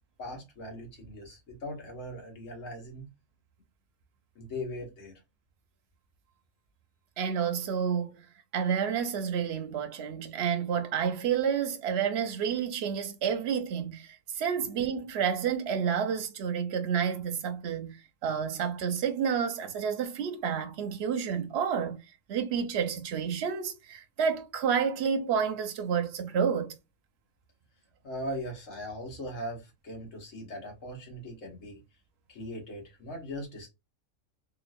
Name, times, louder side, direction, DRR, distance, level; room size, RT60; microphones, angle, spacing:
voice 1, 0.2-3.1 4.4-5.2 28.0-31.8 32.3-33.7, equal, 75° left, 1.7 m, -39 dB
voice 2, 7.2-8.2 8.5-18.0 18.2-22.0 22.3-26.7, right 7 dB, 60° right, 0.8 m, -30 dB
3.8 x 2.5 x 2.5 m
omnidirectional pair, 1.3 m